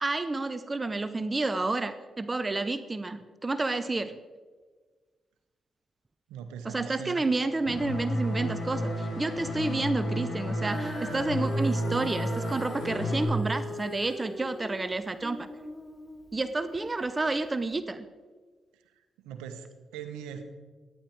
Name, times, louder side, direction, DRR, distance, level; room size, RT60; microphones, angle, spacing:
voice 1, 0.0-4.2 6.6-15.5 16.3-18.1, right 3 dB, 30° right, 12 dB, 0.8 m, -30 dB
voice 2, 6.3-7.2 19.2-20.4, right 8 dB, 90° right, 8 dB, 1.1 m, -41 dB
sound 1, 7.7-13.2, equal, 65° left, 4.8 m, -32 dB
Female singing, 10.6-16.9 17.6-17.7, equal, ahead, 2.4 m, -40 dB
14.5 x 10.5 x 4.6 m, 1.4 s
supercardioid pair, 50°, 0 cm